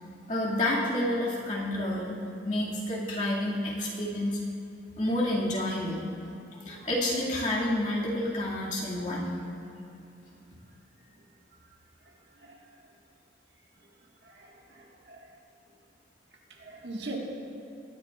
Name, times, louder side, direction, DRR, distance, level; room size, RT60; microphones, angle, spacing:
voice 1, 0.3-2.2 2.4-4.4 5.0-6.0 6.5-9.3, left 1 dB, 45° left, -6 dB, 2.1 m, -29 dB
voice 2, 14.4-15.2 16.6-17.2, right 2 dB, 75° right, -1 dB, 1.6 m, -41 dB
20.5 x 10.5 x 2.4 m, 2.7 s
head